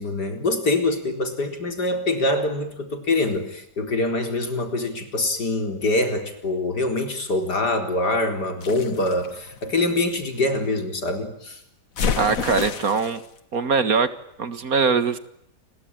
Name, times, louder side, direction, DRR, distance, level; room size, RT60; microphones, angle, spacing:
voice 1, 0.0-11.6, left 2 dB, 75° left, 7 dB, 4.9 m, -24 dB
sound 1, 8.6-10.5 12.0-13.3, left 6 dB, 55° left, 1.8 m, -29 dB
voice 2, 12.2-13.2 13.5-14.1 14.4-15.2, right 5 dB, 60° right, 13 dB, 2.1 m, -21 dB
29.5 x 22.5 x 8.9 m, 0.76 s
omnidirectional pair, 1.8 m